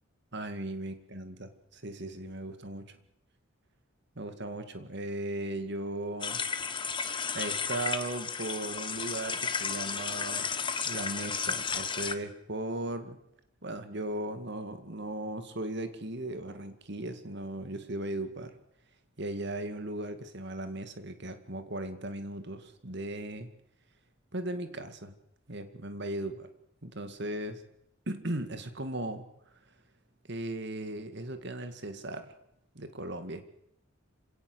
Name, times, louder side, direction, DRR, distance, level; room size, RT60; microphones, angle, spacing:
voice 1, 0.3-3.0 4.2-6.4 7.3-10.6 10.8-13.2 13.6-18.5 19.2-23.5 24.3-25.1 25.5-26.5 26.8-27.6 28.1-29.3 30.3-32.3 32.7-33.4, right 1 dB, 55° right, 9 dB, 2.2 m, -37 dB
sound 1, 6.2-12.2, left 6 dB, 25° left, 1.2 m, -33 dB
26.5 x 17.5 x 8.0 m, 0.77 s
head